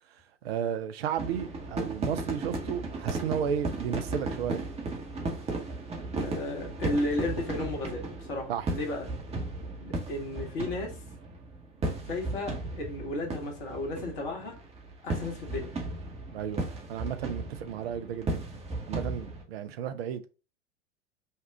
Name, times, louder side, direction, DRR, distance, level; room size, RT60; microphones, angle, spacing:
voice 1, 0.4-4.6 8.5-8.8 16.3-18.4 18.9-20.3, right 8 dB, 60° right, 0.7 m, -33 dB
sound 1, 1.2-19.4, right 2 dB, 15° right, 1.0 m, -35 dB
voice 2, 6.2-9.1 9.8-10.9 12.1-14.5 15.0-15.7, left 2 dB, 55° left, 1.7 m, -34 dB
5.5 x 2.4 x 3.4 m
figure-of-eight pair, 85°, 35 cm